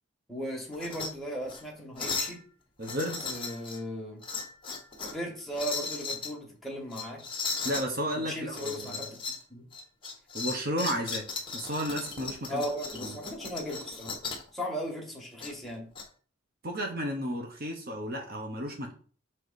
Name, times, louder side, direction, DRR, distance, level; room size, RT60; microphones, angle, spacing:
voice 1, 0.3-2.4 3.2-4.2 5.1-7.2 8.3-9.1 9.5-9.6 12.5-14.2 14.5-15.9, equal, ahead, -2 dB, 1.8 m, -37 dB
sound 1, 0.7-1.1 1.4-1.6 2.0-2.4 2.8-3.8 4.2-5.2 5.5-6.3 6.9-7.9 8.5-9.4 9.7-14.5 15.4-16.0, left 4 dB, 25° left, 1.2 m, -36 dB
voice 2, 2.8-3.4 7.6-9.2 10.3-11.2 11.5-12.6 13.0-13.1 16.6-18.9, equal, 50° right, 2 dB, 1.1 m, -33 dB
6.4 x 4.1 x 4.1 m, 0.42 s
head